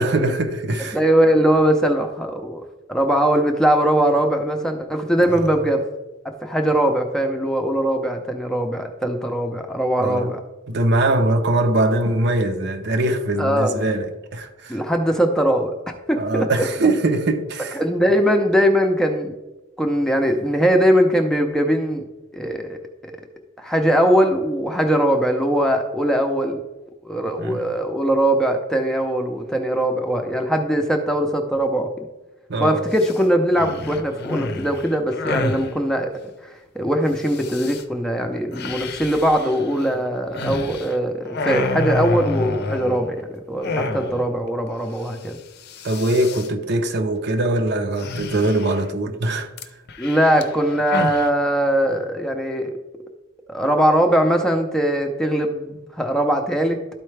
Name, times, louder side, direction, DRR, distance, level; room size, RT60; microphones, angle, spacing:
voice 1, 0.0-1.0 5.2-5.6 10.0-10.3 10.7-14.8 16.2-17.8 27.4-27.7 32.5-32.8 43.7-44.0 45.8-49.5, right 2 dB, 55° right, 0.8 m, -22 dB
voice 2, 0.9-2.6 2.9-5.8 6.2-10.4 13.4-13.9 14.7-16.7 17.7-19.3 19.8-22.0 22.3-23.1 23.6-26.6 27.0-32.1 32.6-36.1 36.4-45.4 50.0-52.8 53.5-56.8, equal, 5° left, 0.6 m, -21 dB
grumbling from sleeping, 32.9-33.2 33.5-35.7 37.2-37.8 38.5-41.0 41.3-43.2 43.6-44.4 44.7-44.8 45.0-45.3 45.6-46.5 48.0-48.9 49.6-51.3, left 2 dB, 55° left, 0.6 m, -29 dB
12.5 x 4.5 x 3.3 m
head